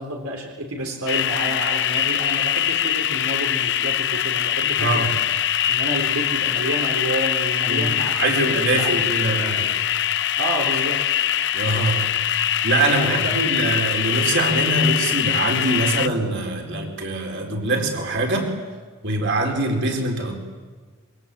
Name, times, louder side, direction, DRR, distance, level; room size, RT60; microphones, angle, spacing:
voice 1, 0.0-5.1 5.7-9.3 9.6-9.7 10.4-11.0 13.0-13.5, right 1 dB, 85° right, 1 dB, 3.5 m, -29 dB
sound 1, 1.1-16.1, left 11 dB, 55° left, 0.7 m, -23 dB
voice 2, 4.8-5.2 7.7-9.7 11.5-12.2 12.6-18.5 19.0-20.4, right 2 dB, 55° right, 2 dB, 4.5 m, -23 dB
27.0 x 24.0 x 8.6 m, 1.4 s
head